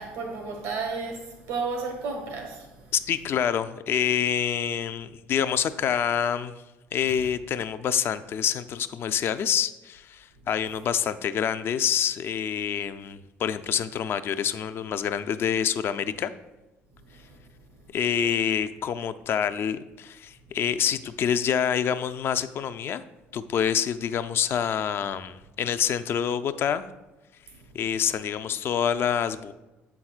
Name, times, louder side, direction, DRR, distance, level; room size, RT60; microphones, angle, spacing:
voice 1, 0.0-2.7 17.3-17.4, right 4 dB, 85° right, 2 dB, 1.3 m, -32 dB
voice 2, 2.9-6.5 6.9-16.3 17.9-23.0 23.3-26.9 27.7-29.5, left 8 dB, 50° left, 11 dB, 0.3 m, -27 dB
7.6 x 5.8 x 2.4 m, 1.1 s
supercardioid pair, 85°, 5 cm